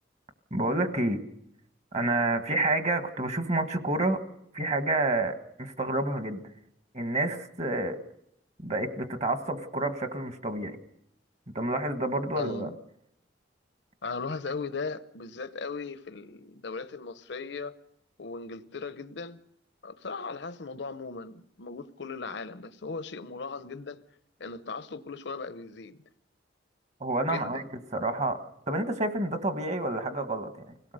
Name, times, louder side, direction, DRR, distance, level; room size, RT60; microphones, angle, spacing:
voice 1, 0.5-1.2 1.9-4.2 4.5-6.4 6.9-8.0 8.6-10.8 11.5-12.7 27.0-27.6 27.9-30.7, right 2 dB, 35° right, 1.5 m, -29 dB
voice 2, 12.3-12.8 14.0-17.8 18.2-19.4 19.8-24.0 24.4-26.0 27.3-27.6, left 4 dB, 65° left, 0.8 m, -38 dB
25.0 x 17.0 x 6.6 m
head